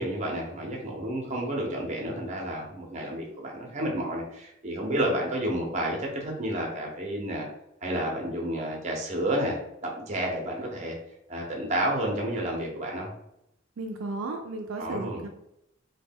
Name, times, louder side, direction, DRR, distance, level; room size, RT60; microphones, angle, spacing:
voice 1, 0.0-7.5 7.8-11.0 11.3-13.1 14.8-15.2, right 1 dB, 35° right, 0 dB, 0.7 m, -30 dB
voice 2, 13.8-15.3, right 2 dB, 80° right, 4 dB, 0.4 m, -34 dB
3.1 x 2.2 x 3.5 m, 0.81 s
head